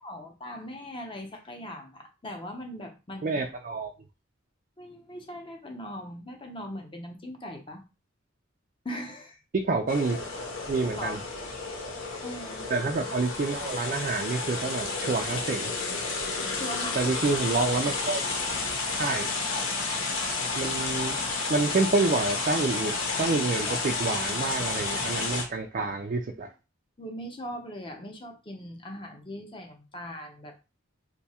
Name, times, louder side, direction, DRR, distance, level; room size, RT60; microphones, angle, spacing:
voice 1, 0.0-3.4 4.8-7.8 8.8-9.4 11.0-11.2 12.2-12.7 16.6-17.0 27.0-30.6, equal, 25° left, 3 dB, 0.6 m, -40 dB
voice 2, 3.2-3.9 9.5-10.2 10.7-11.2 12.7-15.7 17.0-18.2 19.0-19.3 20.6-21.2 21.5-26.5, right 3 dB, 40° right, 3 dB, 0.3 m, -28 dB
sound 1, 9.9-25.4, left 3 dB, 75° left, 0.8 m, -31 dB
2.7 x 2.3 x 4.1 m, 0.29 s
head